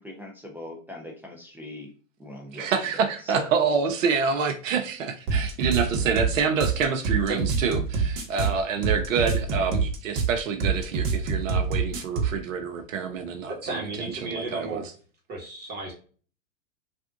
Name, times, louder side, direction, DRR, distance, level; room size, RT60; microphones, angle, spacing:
voice 1, 0.0-1.9 2.2-2.7, left 1 dB, 5° right, 0.5 m, -41 dB
voice 2, 2.5-13.8 14.2-14.8, right 6 dB, 70° right, 0.7 m, -27 dB
sound 1, 5.3-12.4, right 4 dB, 45° right, 1.0 m, -26 dB
voice 3, 13.5-14.8 15.3-15.9, right 2 dB, 25° right, 1.2 m, -33 dB
3.5 x 2.5 x 2.4 m
hypercardioid pair, 115°, 40 cm